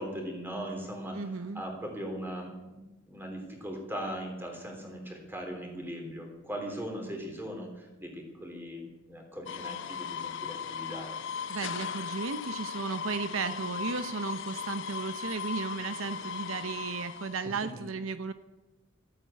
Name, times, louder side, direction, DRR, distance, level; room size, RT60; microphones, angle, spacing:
voice 1, 0.0-1.2 1.5-2.8 3.1-11.2 17.8-17.9, equal, 10° right, 1 dB, 3.2 m, -39 dB
voice 2, 1.1-1.6 11.5-18.3, right 4 dB, 75° right, 11 dB, 0.7 m, -35 dB
sound 1, 9.5-17.4, left 7 dB, 65° left, 0.6 m, -37 dB
13.5 x 9.0 x 8.3 m, 1.1 s
head